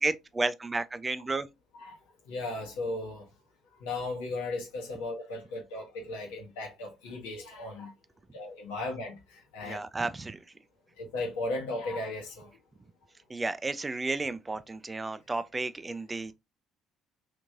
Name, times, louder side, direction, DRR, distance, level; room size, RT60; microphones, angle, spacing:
voice 1, 0.0-1.5 9.6-10.4 13.3-16.3, right 3 dB, 20° right, 0.4 m, -32 dB
voice 2, 2.3-3.2 3.8-7.9 8.3-9.1 9.5-9.8 11.0-12.5, left 2 dB, 70° left, 1.2 m, -36 dB
3.3 x 3.0 x 2.5 m
figure-of-eight pair, 50°, 0 cm